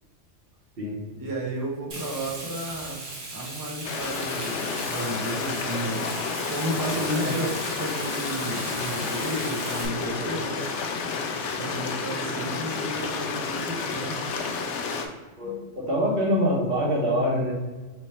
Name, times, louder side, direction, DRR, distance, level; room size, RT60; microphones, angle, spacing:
voice 1, 1.1-3.0 3.3-10.6 11.5-14.2, right 1 dB, 25° right, -2 dB, 0.5 m, -33 dB
Frying (food), 1.9-9.9, right 2 dB, 90° right, 1.5 m, -38 dB
Stream, 3.8-15.1, left 4 dB, 75° left, 0.9 m, -30 dB
voice 2, 15.4-17.5, equal, 50° right, -3 dB, 1.2 m, -25 dB
3.4 x 3.0 x 4.2 m, 1.3 s
omnidirectional pair, 1.2 m